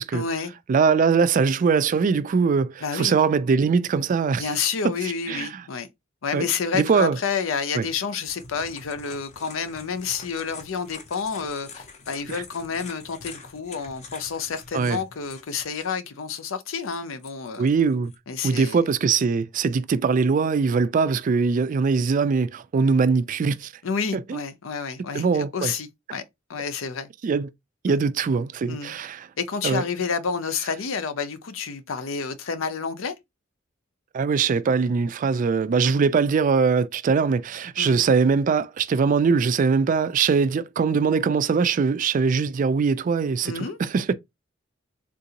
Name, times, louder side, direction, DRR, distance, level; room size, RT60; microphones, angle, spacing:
voice 1, 0.1-0.5 2.8-3.1 4.4-5.9 6.2-17.7 18.3-18.8 23.8-26.2 26.5-27.1 27.9-28.0 28.7-28.9 29.4-33.2 35.8-35.9 37.8-38.0 43.4-43.8, left 5 dB, 80° left, 0.6 m, -29 dB
voice 2, 0.7-4.5 5.3-5.6 6.3-6.5 6.7-7.2 7.7-7.8 14.7-15.0 17.6-18.1 18.4-23.7 24.1-24.4 25.1-25.7 27.2-27.5 27.8-29.3 29.6-29.8 34.1-44.1, right 5 dB, 40° right, 0.3 m, -22 dB
sound 1, 8.3-15.9 16.3-18.2, left 4 dB, 35° left, 0.6 m, -45 dB
3.7 x 2.5 x 2.8 m
head